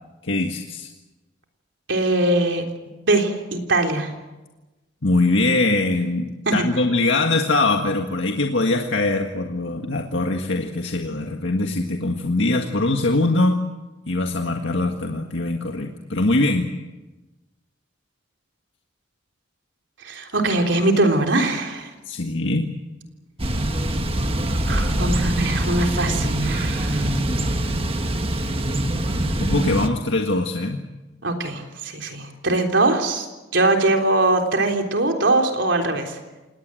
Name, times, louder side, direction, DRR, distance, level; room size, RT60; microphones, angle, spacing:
voice 1, 0.2-0.9 5.0-13.6 14.1-16.7 22.1-22.7 29.4-30.8, left 2 dB, 75° left, 2 dB, 1.8 m, -22 dB
voice 2, 1.9-2.6 3.1-4.1 6.5-6.6 20.0-21.9 24.7-27.1 31.2-33.3 33.5-36.1, right 2 dB, 75° right, 3 dB, 3.7 m, -21 dB
Thunder / Bicycle, 23.4-29.9, right 1 dB, 30° right, 1.4 m, -23 dB
28.5 x 18.5 x 7.8 m, 1.1 s
head